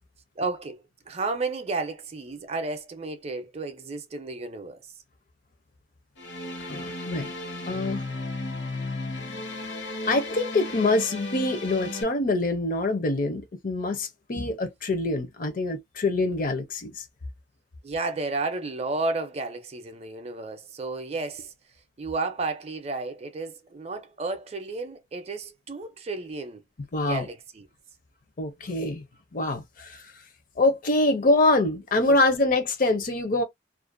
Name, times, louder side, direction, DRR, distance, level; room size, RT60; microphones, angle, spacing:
voice 1, 0.4-4.8 17.8-21.5 22.0-26.6 27.0-27.7 32.1-32.2, right 3 dB, 35° right, 0.5 m, -32 dB
sound 1, 6.2-12.0, left 2 dB, 75° left, 0.8 m, -35 dB
voice 2, 6.7-7.3 7.7-8.0 10.1-16.9 26.9-27.3 28.4-29.0 29.3-30.0 30.6-33.4, left 2 dB, 50° left, 0.5 m, -25 dB
2.4 x 2.1 x 2.4 m
head